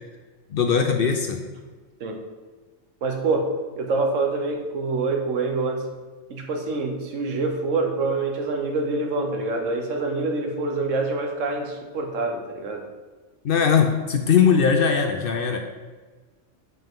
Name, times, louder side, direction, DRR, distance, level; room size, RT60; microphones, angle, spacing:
voice 1, 0.5-1.4 13.4-15.6, left 6 dB, 60° left, 5 dB, 0.6 m, -20 dB
voice 2, 3.0-5.9 6.3-12.8, right 3 dB, 80° right, 3 dB, 1.3 m, -26 dB
7.7 x 5.4 x 3.7 m, 1.3 s
omnidirectional pair, 1.3 m